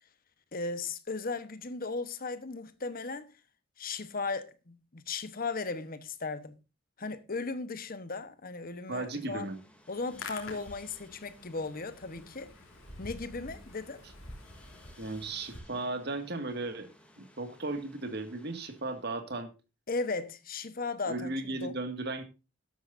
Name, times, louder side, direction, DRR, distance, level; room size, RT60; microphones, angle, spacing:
voice 1, 0.5-3.3 3.8-6.6 7.0-9.5 9.9-12.5 13.0-14.0 19.9-21.7, left 3 dB, 45° left, 1.1 m, -36 dB
voice 2, 8.9-9.6 15.0-16.9 17.2-19.5 21.1-22.2, right 2 dB, 55° right, 2.0 m, -36 dB
sound 1, 9.0-19.1, left 1 dB, 5° left, 2.6 m, -60 dB
Hands, 9.9-15.6, left 2 dB, 90° left, 3.3 m, -48 dB
12.5 x 12.5 x 2.6 m
head